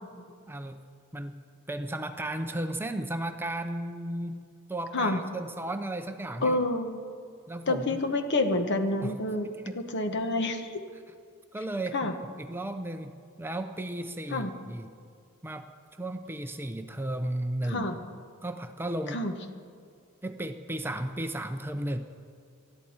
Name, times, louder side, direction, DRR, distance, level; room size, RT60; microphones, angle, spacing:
voice 1, 0.5-0.8 1.1-1.4 1.7-4.4 4.7-6.6 7.5-8.0 9.0-9.1 9.4-9.8 11.5-12.0 12.4-14.9 15.4-15.7 16.0-17.9 18.4-19.2 20.2-22.0, right 1 dB, 10° right, 7 dB, 0.5 m, -34 dB
voice 2, 6.4-7.0 7.7-9.5 9.8-10.8 11.9-12.1 14.3-14.5 17.7-18.0 19.1-19.3, left 2 dB, 50° left, 7 dB, 1.1 m, -28 dB
19.5 x 13.0 x 4.3 m, 2.3 s
head